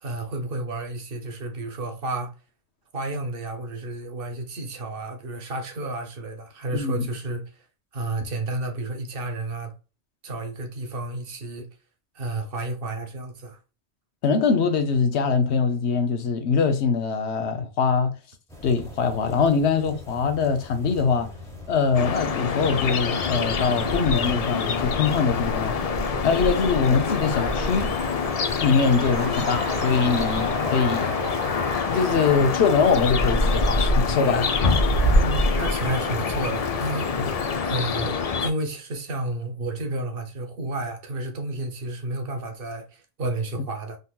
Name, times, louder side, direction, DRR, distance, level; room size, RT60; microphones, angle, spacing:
voice 1, 0.0-2.3 2.9-7.5 7.9-9.7 10.2-11.7 12.1-13.6 35.2-37.1 37.6-44.0, right 2 dB, 60° right, 0.9 m, -31 dB
voice 2, 6.7-7.0 14.2-18.1 18.6-21.3 21.7-25.8 26.2-27.9 28.6-31.2 31.9-34.6 37.2-37.3, left 5 dB, 80° left, 1.0 m, -23 dB
sound 1, 18.5-37.6, right 1 dB, 5° left, 0.9 m, -30 dB
sound 2, 21.9-38.5, left 5 dB, 60° left, 0.4 m, -26 dB
sound 3, 27.0-32.3, right 5 dB, 85° right, 1.1 m, -38 dB
3.8 x 2.8 x 2.3 m
omnidirectional pair, 1.1 m